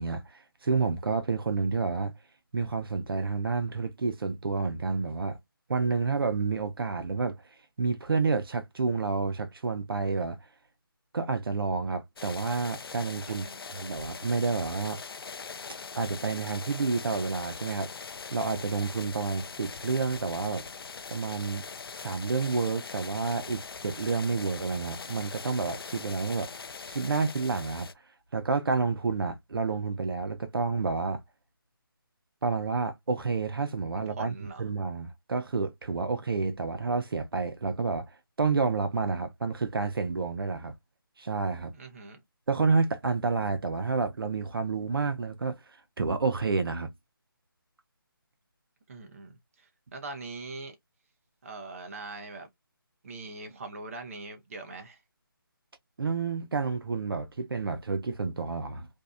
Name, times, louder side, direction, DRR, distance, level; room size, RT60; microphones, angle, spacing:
voice 1, 0.0-2.1 2.5-5.4 5.7-7.4 7.8-10.4 11.1-15.0 16.0-17.9 18.3-20.6 21.1-21.6 21.9-26.5 26.8-27.9 28.3-31.2 32.4-38.1 38.4-40.7 41.2-41.7 42.5-45.6 46.0-46.9 56.0-58.9, right 4 dB, 75° right, 0.7 m, -29 dB
sound 1, 12.2-27.9, left 5 dB, 80° left, 0.4 m, -42 dB
voice 2, 13.3-13.6 34.2-34.7 41.7-42.2 48.9-50.7 51.4-52.5 53.0-55.0, right 3 dB, 35° right, 0.6 m, -42 dB
2.6 x 2.1 x 2.4 m
figure-of-eight pair, 165°, 12 cm